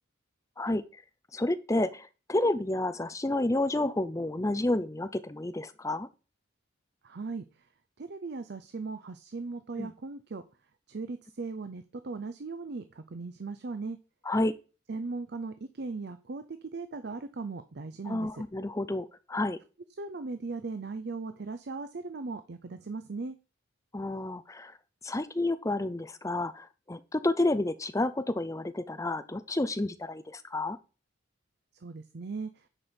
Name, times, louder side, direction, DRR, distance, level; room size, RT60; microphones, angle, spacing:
voice 1, 0.6-1.0 1.3-6.1 9.8-9.9 14.3-14.5 18.1-19.6 23.9-24.7 25.0-30.8, left 2 dB, 15° left, 12 dB, 0.5 m, -30 dB
voice 2, 7.0-7.4 8.0-10.4 10.9-14.0 14.9-18.4 20.0-23.4 31.8-32.7, right 3 dB, 55° right, 10 dB, 0.5 m, -38 dB
9.9 x 4.5 x 5.1 m, 0.33 s
head